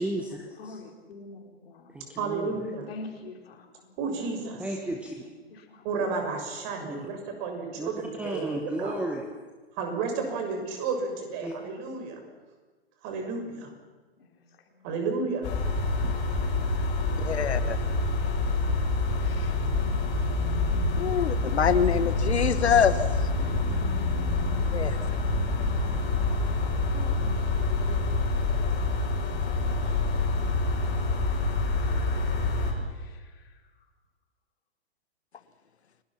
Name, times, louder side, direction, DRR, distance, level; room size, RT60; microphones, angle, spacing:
voice 1, 0.0-0.8 1.9-2.6 4.6-5.1 6.8-7.1 7.8-7.9 8.2-9.2 11.4-11.6, right 1 dB, 5° right, 3 dB, 1.7 m, -33 dB
voice 2, 0.6-1.9 2.9-3.9 5.2-5.9 11.6-12.1 14.2-14.3 14.7-14.8 19.2-20.1 20.8-21.0 26.9-28.5 29.8-30.3 32.9-33.6, left 3 dB, 60° left, 3 dB, 4.6 m, -47 dB
voice 3, 2.2-2.9 4.0-4.6 5.8-8.9 9.8-12.2 13.0-13.6 14.8-15.5, right 4 dB, 40° right, 3 dB, 6.3 m, -32 dB
sound 1, 15.4-32.7, left 3 dB, 30° left, 5.9 m, -27 dB
voice 4, 17.2-17.8 21.0-22.9 24.7-25.0, left 7 dB, 75° left, 11 dB, 1.5 m, -24 dB
29.5 x 18.5 x 5.9 m, 1.3 s
hypercardioid pair, 120°, 33 cm